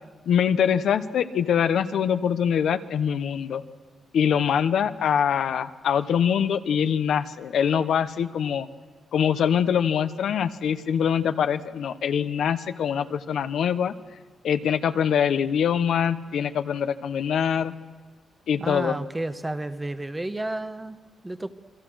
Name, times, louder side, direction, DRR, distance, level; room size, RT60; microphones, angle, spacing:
voice 1, 0.3-3.6 4.1-8.7 9.1-13.9 14.4-17.7 18.5-19.0, left 8 dB, 75° left, 10 dB, 1.0 m, -24 dB
voice 2, 18.6-21.5, right 2 dB, 15° right, 10 dB, 1.0 m, -31 dB
28.0 x 23.5 x 6.4 m, 1.4 s
cardioid pair, 120°, 0 cm